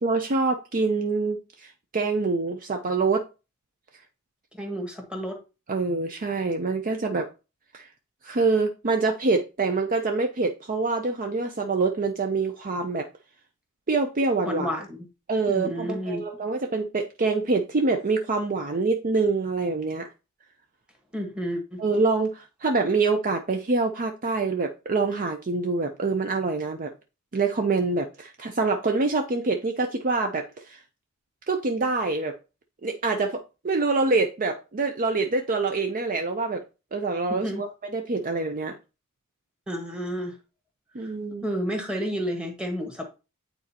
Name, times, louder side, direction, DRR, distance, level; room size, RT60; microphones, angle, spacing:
voice 1, 0.0-3.3 5.7-7.3 7.7-7.9 8.2-13.1 13.9-14.7 15.3-20.1 21.8-26.9 27.3-30.8 31.5-32.4 32.8-36.6 36.9-38.8 40.9-41.5, right 3 dB, 40° right, 0.6 m, -25 dB
voice 2, 4.6-5.4 14.4-15.1 15.5-16.2 21.1-21.8 37.3-37.6 39.7-40.4 41.0-41.1 41.4-43.1, equal, 5° right, 1.5 m, -31 dB
8.9 x 4.1 x 2.9 m
head